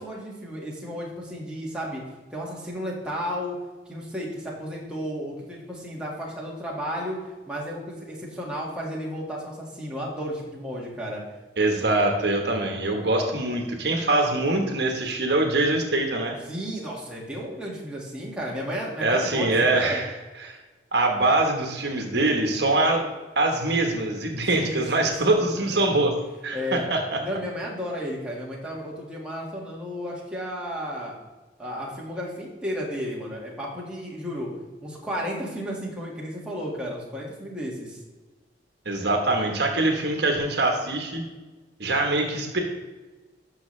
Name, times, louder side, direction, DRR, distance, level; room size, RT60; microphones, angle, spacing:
voice 1, 0.0-2.0 2.3-3.6 3.9-7.2 7.5-11.2 16.5-20.1 24.5-25.5 26.5-26.8 27.2-31.1 31.6-34.5 34.8-38.0, equal, 5° right, -4 dB, 1.8 m, -33 dB
voice 2, 11.6-16.3 19.0-20.1 20.4-20.6 20.9-23.0 23.4-26.1 26.4-27.2 38.8-41.2 41.8-42.6, right 2 dB, 60° right, 3 dB, 1.2 m, -23 dB
13.0 x 5.8 x 3.2 m, 1.3 s
head